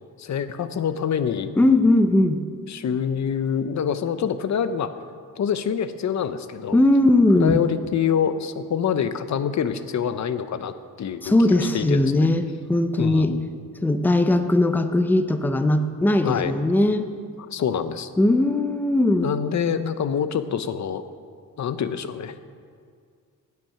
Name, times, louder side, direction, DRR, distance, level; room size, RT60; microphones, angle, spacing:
voice 1, 0.2-1.5 2.7-4.9 5.4-6.8 7.3-12.3 13.0-13.5 16.2-16.5 17.5-18.1 19.2-21.0 21.6-22.4, left 8 dB, 55° left, 11 dB, 0.7 m, -26 dB
voice 2, 1.6-2.4 6.7-7.6 11.2-13.3 13.8-17.1 18.2-19.3, left 1 dB, 5° left, 9 dB, 0.5 m, -19 dB
16.0 x 9.6 x 5.7 m, 2.1 s
wide cardioid pair, 175°, 34 cm